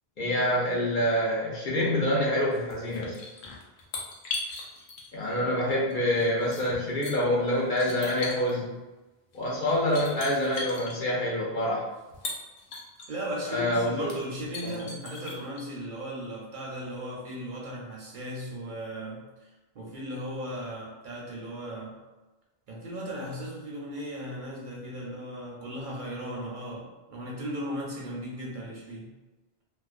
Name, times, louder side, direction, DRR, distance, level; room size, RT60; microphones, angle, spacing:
voice 1, 0.2-3.2 5.1-8.7 9.3-11.9 13.5-14.2 14.6-14.8, left 1 dB, 60° left, -5 dB, 0.7 m, -26 dB
sound 1, 2.5-5.3 5.9-7.1 7.7-8.6 9.3-9.4 9.7-11.0 12.0-13.1 13.6-13.7 14.0-15.6, left 3 dB, 90° left, 0.8 m, -38 dB
voice 2, 13.1-22.0 22.7-29.1, equal, 60° right, -3 dB, 0.6 m, -37 dB
2.4 x 2.1 x 2.4 m, 1.1 s
omnidirectional pair, 1.0 m